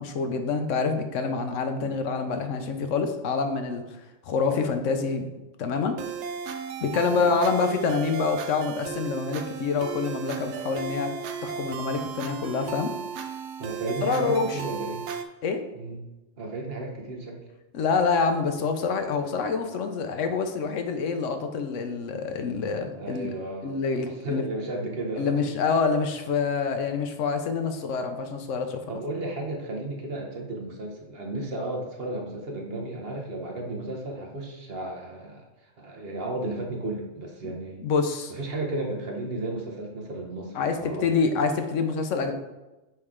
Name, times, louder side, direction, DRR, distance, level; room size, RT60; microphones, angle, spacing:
voice 1, 0.0-3.8 4.2-5.3 5.6-6.0 6.8-11.1 11.4-12.9 14.0-14.6 15.4-15.6 17.7-23.3 23.6-24.4 25.2-28.8 37.8-38.3 40.5-42.3, left 5 dB, 75° left, 6 dB, 1.0 m, -26 dB
sound 1, 6.0-15.2, right 6 dB, 65° right, 0.8 m, -35 dB
voice 2, 13.6-15.1 15.7-16.1 16.4-17.4 22.9-23.8 24.0-25.6 28.9-37.8 38.3-41.2, right 2 dB, 50° right, 0 dB, 1.2 m, -34 dB
9.1 x 3.2 x 3.6 m, 1.0 s
omnidirectional pair, 1.3 m